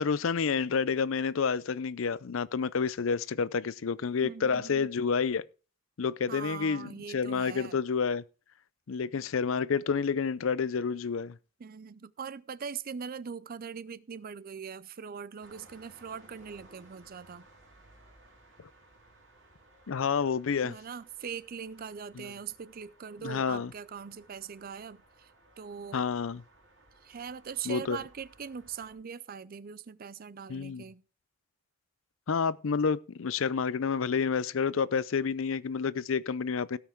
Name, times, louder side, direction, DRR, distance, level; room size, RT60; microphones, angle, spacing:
voice 1, 0.0-5.4 6.0-8.2 8.9-11.4 19.9-20.7 22.2-22.3 23.2-23.7 25.9-26.4 27.7-28.0 30.5-30.8 32.3-36.8, left 5 dB, 70° left, 0.5 m, -29 dB
voice 2, 4.2-4.9 6.3-7.8 11.6-17.5 20.6-25.3 25.6-26.1 27.0-31.0, right 6 dB, 45° right, 0.5 m, -41 dB
sound 1, 15.4-29.0, right 2 dB, 65° right, 4.1 m, -60 dB
17.5 x 5.8 x 4.6 m
head